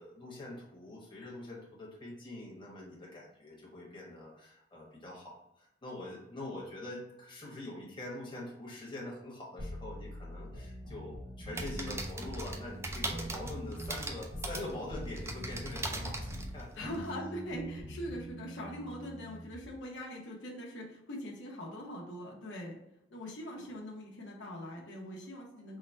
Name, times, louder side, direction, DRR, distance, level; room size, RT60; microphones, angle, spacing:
voice 1, 0.0-16.9 23.5-23.7, left 1 dB, 25° left, -4 dB, 1.2 m, -44 dB
sound 1, 9.6-14.6 14.9-19.7, equal, 85° right, 1.0 m, -44 dB
sound 2, 11.5-17.1, right 2 dB, 15° right, 0.4 m, -40 dB
voice 2, 16.8-22.8 23.1-25.8, equal, 85° left, -2 dB, 0.9 m, -42 dB
3.7 x 2.2 x 4.2 m, 0.83 s
head